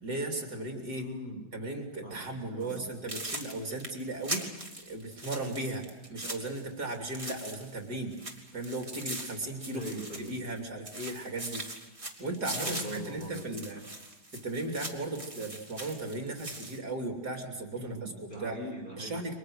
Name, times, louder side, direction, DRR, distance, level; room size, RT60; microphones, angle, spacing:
voice 1, 0.0-1.1 1.5-8.2 8.5-9.8 10.3-11.7 12.2-13.8 14.4-18.1 18.4-18.6 19.0-19.4, right 2 dB, 60° right, 3 dB, 3.8 m, -36 dB
voice 2, 0.9-1.5 2.0-2.9 9.7-10.3 12.5-13.4 13.7-13.9 17.8-19.2, equal, 25° left, -1 dB, 6.8 m, -41 dB
sound 1, 2.6-2.8 3.1-7.8 8.1-10.6 10.9-16.8, right 1 dB, 15° right, 3.2 m, -41 dB
30.0 x 25.5 x 6.5 m, 1.1 s
omnidirectional pair, 1.9 m